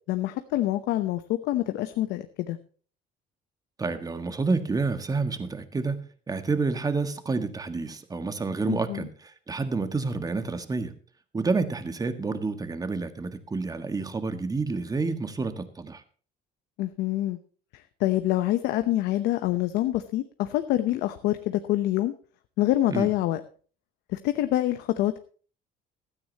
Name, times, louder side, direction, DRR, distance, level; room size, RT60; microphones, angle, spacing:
voice 1, 0.1-2.6 8.7-9.1 16.8-17.4 17.7-22.1 22.6-23.4 24.1-25.2, left 14 dB, 90° left, 9 dB, 0.9 m, -26 dB
voice 2, 3.8-6.0 6.3-10.9 11.3-16.0 22.9-23.1, right 4 dB, 20° right, 9 dB, 1.7 m, -29 dB
15.5 x 13.0 x 3.0 m, 0.40 s
cardioid pair, 110°, 17 cm